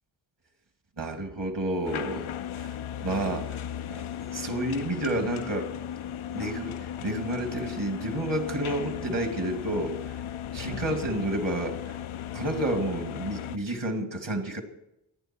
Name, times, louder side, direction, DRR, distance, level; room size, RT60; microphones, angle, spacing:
voice 1, 1.0-2.3 2.6-2.7 3.0-3.6 3.9-5.7 6.3-10.0 10.5-11.8 12.3-14.6, right 1 dB, 60° right, 2.4 m, -30 dB
sound 1, 1.8-13.6, left 10 dB, 85° left, 0.6 m, -36 dB
27.0 x 9.6 x 4.5 m
cardioid pair, 45°, 48 cm